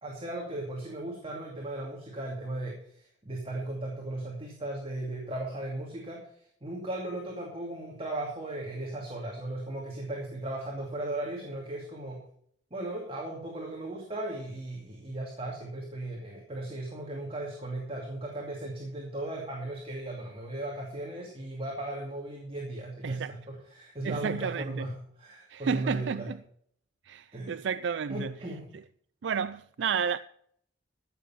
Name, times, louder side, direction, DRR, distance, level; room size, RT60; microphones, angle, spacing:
voice 1, 0.0-12.2 12.7-23.2 23.5-26.3 27.3-27.5 28.1-28.7, right 1 dB, 30° right, 2.5 m, -37 dB
voice 2, 24.0-24.9 25.5-26.4 27.1-28.3 29.2-30.2, right 6 dB, 85° right, 0.4 m, -31 dB
15.0 x 7.1 x 5.6 m
head